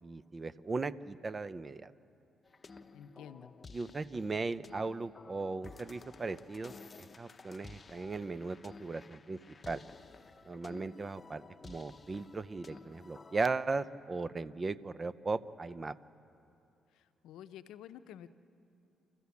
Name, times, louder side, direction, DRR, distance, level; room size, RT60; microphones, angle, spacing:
voice 1, 0.0-1.9 3.7-6.7 7.0-9.4 9.7-9.8 10.5-16.0, right 3 dB, 30° right, 16 dB, 0.6 m, -37 dB
sound 1, 2.4-13.5, left 4 dB, 30° left, 0.8 m, -54 dB
voice 2, 2.9-3.5 16.9-18.3, left 10 dB, 85° left, 12 dB, 0.7 m, -50 dB
28.0 x 14.0 x 8.4 m, 2.8 s
cardioid pair, 90°, 0 cm